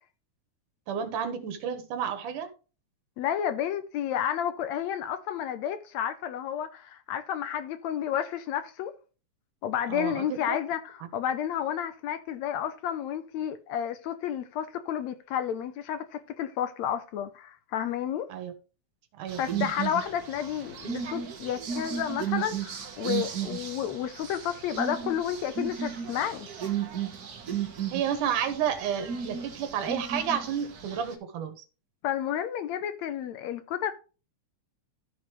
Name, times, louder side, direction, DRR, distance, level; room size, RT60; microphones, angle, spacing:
voice 1, 0.9-2.5 9.9-10.6 18.3-18.5 19.1-19.7 27.9-31.6, right 8 dB, 85° right, 2.8 m, -31 dB
voice 2, 3.2-8.9 9.6-18.3 19.4-26.5 32.0-33.9, left 9 dB, 75° left, 1.8 m, -31 dB
sound 1, 19.3-31.1, right 8 dB, 65° right, 0.9 m, -35 dB
14.0 x 5.5 x 3.1 m
omnidirectional pair, 3.5 m